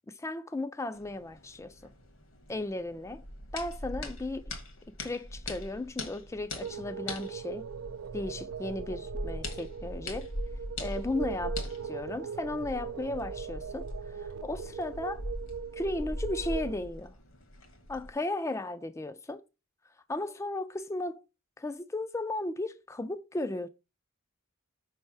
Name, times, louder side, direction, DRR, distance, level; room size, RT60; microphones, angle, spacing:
voice 1, 0.1-1.9 2.5-3.2 3.5-4.4 4.9-7.7 8.1-10.3 10.8-11.6 11.8-15.2 15.7-17.2 17.9-19.4 20.1-21.2 21.6-23.7, left 2 dB, 15° left, 0.3 m, -35 dB
sound 1, 0.9-18.1, left 1 dB, 65° left, 1.4 m, -41 dB
sound 2, 6.6-16.7, right 7 dB, 85° right, 0.4 m, -40 dB
5.4 x 3.4 x 5.4 m
head